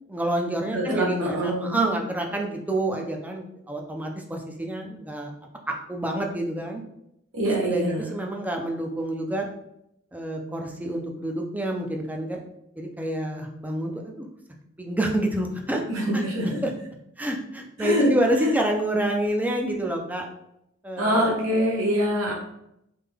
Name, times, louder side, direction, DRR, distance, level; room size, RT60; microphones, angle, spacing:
voice 1, 0.1-5.3 5.7-6.8 7.4-9.5 10.1-12.4 12.8-14.3 14.8-15.8 16.1-16.2 16.6-16.7 17.2-20.3 20.8-21.3, right 1 dB, 10° right, 2 dB, 0.4 m, -28 dB
voice 2, 0.7-1.8 7.3-8.1 15.9-16.6 17.8-18.1 18.4-18.5 21.0-22.3, equal, 80° right, -3 dB, 0.9 m, -25 dB
3.3 x 2.2 x 3.4 m, 0.80 s
head